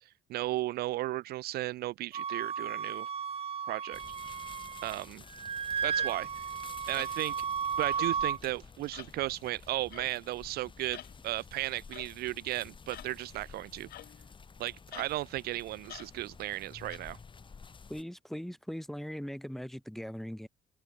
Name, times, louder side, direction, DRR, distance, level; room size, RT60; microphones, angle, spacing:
voice 1, 0.3-3.1 3.7-4.0 4.8-5.2 5.8-6.5 6.9-7.3 7.8-13.9 14.6-17.2, right 16 dB, 65° right, 0.4 m, -35 dB
Wind instrument woodwind instrument, 2.1-5.0 5.3-8.4, right 7 dB, 35° right, 1.4 m, -34 dB
sound 1, 3.9-18.0, left 5 dB, 30° left, 6.0 m, -52 dB
sound 2, 5.9-6.1 6.9-7.2 7.9-8.2 8.9-9.1 9.9-10.2 10.9-11.1 11.9-12.1 12.9-13.2 13.9-14.3 14.9-15.1 15.9-16.1 16.9-17.0, left 14 dB, 70° left, 2.0 m, -48 dB
voice 2, 17.9-20.5, equal, ahead, 2.2 m, -40 dB
open air
cardioid pair, 110°, 17 cm